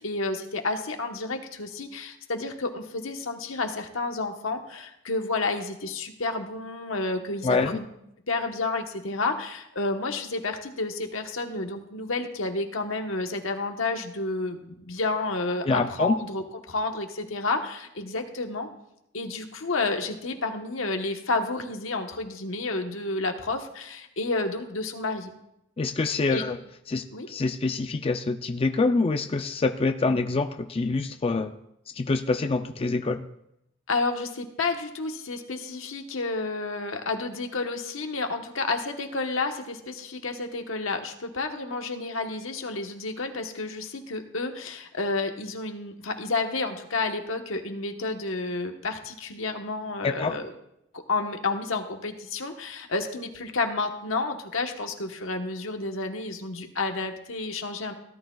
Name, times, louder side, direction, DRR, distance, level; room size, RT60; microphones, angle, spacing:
voice 1, 0.0-7.8 8.3-18.7 19.1-25.3 26.3-26.4 27.1-27.3 33.9-50.5 50.9-57.9, left 3 dB, 80° left, 4 dB, 1.2 m, -30 dB
voice 2, 7.4-7.8 15.7-16.1 25.8-26.6 26.9-31.5 32.0-33.3 50.0-50.4, left 3 dB, 30° left, 7 dB, 0.4 m, -26 dB
17.5 x 11.5 x 2.3 m, 0.81 s
head